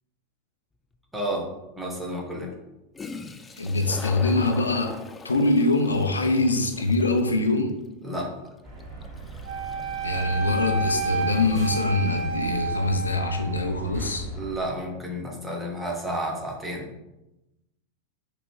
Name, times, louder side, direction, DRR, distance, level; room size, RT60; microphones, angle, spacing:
Toilet flush, 0.9-1.0 2.7-2.8 2.9-12.3, left 4 dB, 15° left, 0.3 m, -43 dB
voice 1, 1.1-1.5 1.7-2.5 8.0-8.3 14.4-16.8, right 1 dB, 5° right, -1 dB, 1.1 m, -31 dB
voice 2, 3.6-4.9 5.2-7.7 10.0-14.3, left 2 dB, 75° left, 6 dB, 0.5 m, -23 dB
sound 1, 8.6-14.6, right 2 dB, 25° right, 1.5 m, -39 dB
Wind instrument woodwind instrument, 9.4-13.7, right 3 dB, 50° right, 0.5 m, -30 dB
5.0 x 3.4 x 3.1 m, 0.96 s
figure-of-eight pair, 90°, 0 cm